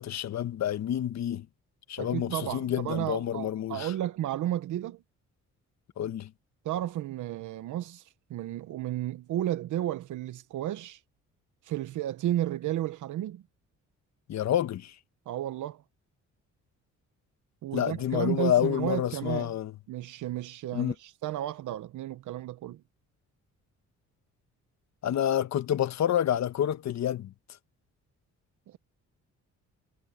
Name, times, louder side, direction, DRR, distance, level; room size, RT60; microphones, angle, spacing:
voice 1, 0.0-1.5 1.9-3.9 6.0-6.3 14.3-14.9 17.7-19.7 20.7-20.9 25.0-27.3, left 10 dB, 65° left, 1.3 m, -28 dB
voice 2, 2.0-5.0 6.6-8.0 8.3-11.0 11.6-13.4 15.3-15.8 17.6-19.5 19.9-22.8 28.7-28.8, right 13 dB, 80° right, 1.1 m, -33 dB
cardioid pair, 90°, 30 cm